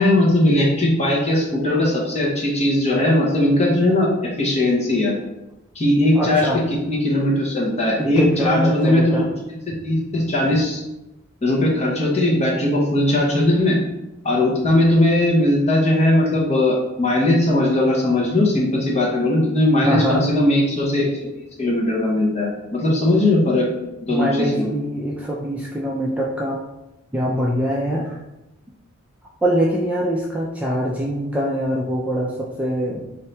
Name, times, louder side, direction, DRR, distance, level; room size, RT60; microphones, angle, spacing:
voice 1, 0.0-5.1 5.7-6.5 6.9-9.2 9.8-10.8 11.4-13.8 14.2-21.3 21.6-23.6 24.0-24.7, left 1 dB, 30° left, -4 dB, 1.0 m, -19 dB
voice 2, 6.1-6.6 8.0-9.3 19.8-20.2 24.1-26.6 27.1-28.2 29.4-33.0, equal, 5° right, -4 dB, 0.4 m, -23 dB
4.1 x 2.7 x 3.3 m, 0.95 s
head